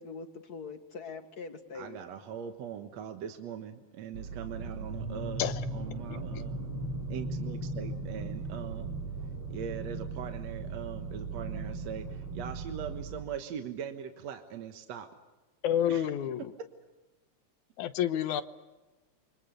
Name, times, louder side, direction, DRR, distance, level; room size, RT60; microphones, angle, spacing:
voice 1, 0.0-2.1, left 4 dB, 35° left, 7 dB, 2.0 m, -43 dB
voice 2, 1.7-6.6 7.1-9.0 9.5-15.1 15.9-16.1, right 8 dB, 65° right, 6 dB, 2.4 m, -41 dB
sound 1, 4.1-13.2, right 2 dB, 50° right, 4.9 m, -37 dB
voice 3, 15.6-16.4 17.8-18.4, left 10 dB, 90° left, 11 dB, 2.5 m, -29 dB
28.5 x 25.0 x 6.7 m, 1.1 s
omnidirectional pair, 3.3 m